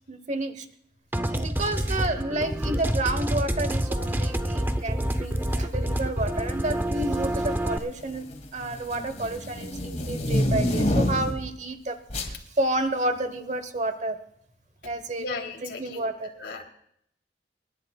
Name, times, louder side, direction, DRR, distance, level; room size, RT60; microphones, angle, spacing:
voice 1, 0.1-0.7 1.3-8.2 8.5-14.2 14.8-15.2 15.6-16.3, right 2 dB, 45° right, 11 dB, 1.0 m, -30 dB
sound 1, 1.1-7.8, right 1 dB, 10° right, 0.7 m, -27 dB
sound 2, 5.2-5.5 6.4-6.9 7.2-11.5 12.1-12.4, left 1 dB, 40° left, 2.3 m, -28 dB
voice 2, 15.2-16.1 16.3-16.6, left 3 dB, 85° left, 2 dB, 3.1 m, -35 dB
27.5 x 11.0 x 2.3 m, 0.69 s
head